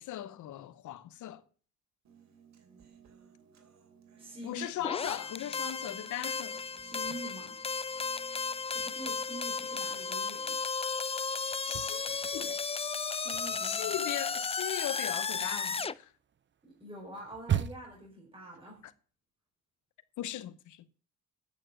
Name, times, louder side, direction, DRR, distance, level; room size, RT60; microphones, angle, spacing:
voice 1, 0.0-1.4 4.4-6.6 7.1-7.2 11.6-12.6 13.6-16.1 18.8-18.9 20.2-20.9, left 13 dB, 75° left, 0.9 m, -38 dB
Human voice, 2.0-10.1, right 7 dB, 65° right, 3.1 m, -60 dB
voice 2, 4.2-4.7 6.8-7.6 8.7-10.6 13.1-14.0 16.6-18.8, right 1 dB, 15° right, 4.7 m, -45 dB
sound 1, 4.8-15.9, left 5 dB, 20° left, 0.5 m, -34 dB
sound 2, 11.5-12.7 13.0-18.1, right 9 dB, 40° right, 0.7 m, -37 dB
9.4 x 6.8 x 8.9 m
cardioid pair, 90°, 30 cm